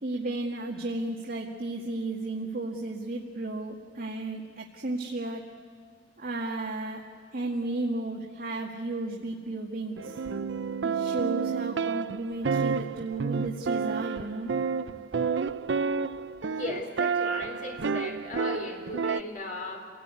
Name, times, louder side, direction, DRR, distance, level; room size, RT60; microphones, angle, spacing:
voice 1, 0.0-5.5 6.2-7.0 7.3-10.2 10.8-14.5, right 2 dB, 55° right, -1 dB, 2.0 m, -34 dB
sound 1, 10.0-19.2, right 5 dB, 70° right, 0.6 m, -30 dB
voice 2, 16.5-19.9, left 2 dB, 45° left, 2 dB, 4.2 m, -37 dB
29.0 x 18.5 x 9.8 m, 2.1 s
head